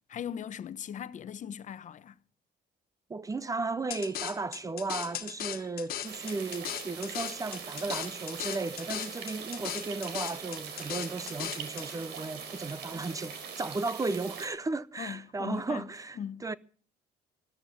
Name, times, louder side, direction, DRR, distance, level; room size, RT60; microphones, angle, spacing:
voice 1, 0.1-2.2 15.0-16.5, left 8 dB, 45° left, 0.9 m, -39 dB
voice 2, 3.1-16.2 16.4-16.5, right 3 dB, 20° right, 0.6 m, -35 dB
sound 1, 3.9-11.9, left 11 dB, 65° left, 1.6 m, -38 dB
sound 2, 6.0-14.5, right 6 dB, 80° right, 4.3 m, -42 dB
14.0 x 13.5 x 6.0 m
cardioid pair, 110°, 17 cm